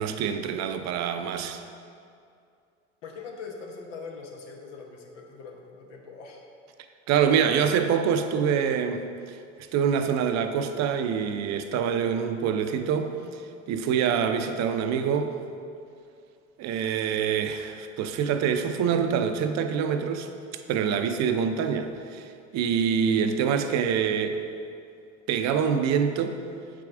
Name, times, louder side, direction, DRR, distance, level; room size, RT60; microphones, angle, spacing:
voice 1, 0.0-1.6 7.1-9.4 9.7-13.4 13.7-15.4 16.6-20.3 20.7-22.3 22.5-24.4 25.3-26.4, right 7 dB, 50° right, 7 dB, 0.6 m, -25 dB
voice 2, 3.0-6.4 7.3-7.6, left 4 dB, 80° left, 1 dB, 1.1 m, -41 dB
7.5 x 4.9 x 3.6 m, 2.4 s
hypercardioid pair, 75°, 36 cm